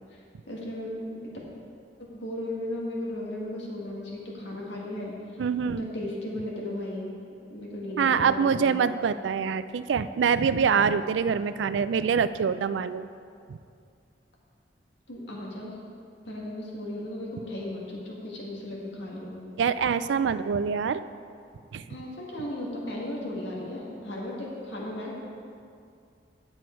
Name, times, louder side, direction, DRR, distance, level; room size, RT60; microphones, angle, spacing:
voice 1, 0.5-1.3 2.0-5.1 5.8-7.1 7.5-8.8 15.1-15.8 16.3-19.4 21.9-25.2, left 1 dB, 85° left, -3 dB, 1.9 m, -35 dB
voice 2, 5.4-5.9 8.0-13.0 13.5-13.6 19.6-21.0 21.7-21.8, right 6 dB, 90° right, 13 dB, 0.4 m, -25 dB
10.5 x 7.6 x 4.5 m, 2.4 s
head